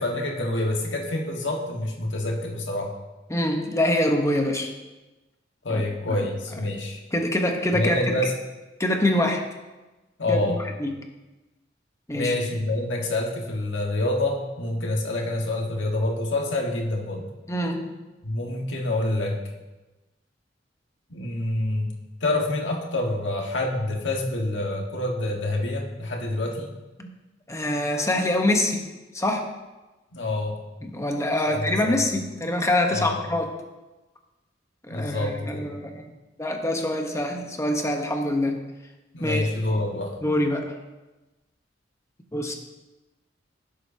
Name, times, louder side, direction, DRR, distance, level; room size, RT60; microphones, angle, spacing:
voice 1, 0.0-2.9 5.6-7.0 7.7-8.3 10.2-10.6 12.1-17.3 18.2-19.4 21.1-21.9 22.2-26.7 30.1-30.6 31.4-32.0 32.9-33.2 34.9-35.7 39.1-40.2, left 2 dB, 70° left, 0 dB, 1.6 m, -27 dB
voice 2, 3.3-4.7 5.7-5.8 6.1-6.2 6.6-6.8 7.1-8.2 8.8-9.4 10.3-11.0 12.1-12.3 17.5-17.9 27.0-27.1 27.5-28.8 29.1-29.5 30.8-33.5 34.9-36.1 36.4-38.6 39.2-39.5 40.2-40.7 42.3-42.5, left 1 dB, 15° left, 3 dB, 1.0 m, -25 dB
15.5 x 7.7 x 2.8 m, 1.1 s
head